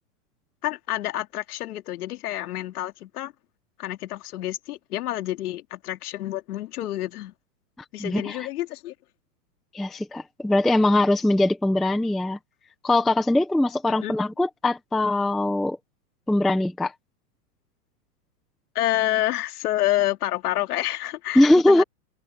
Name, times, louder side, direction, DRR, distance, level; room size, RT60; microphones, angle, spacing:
voice 1, 0.6-3.3 3.8-7.3 7.9-8.9 13.8-14.2 18.7-21.8, left 14 dB, 65° left, 2.2 m, -28 dB
voice 2, 8.0-8.4 9.7-12.4 12.8-15.8 16.3-16.9 21.4-21.8, left 1 dB, ahead, 0.4 m, -21 dB
hypercardioid pair, 145°, 49 cm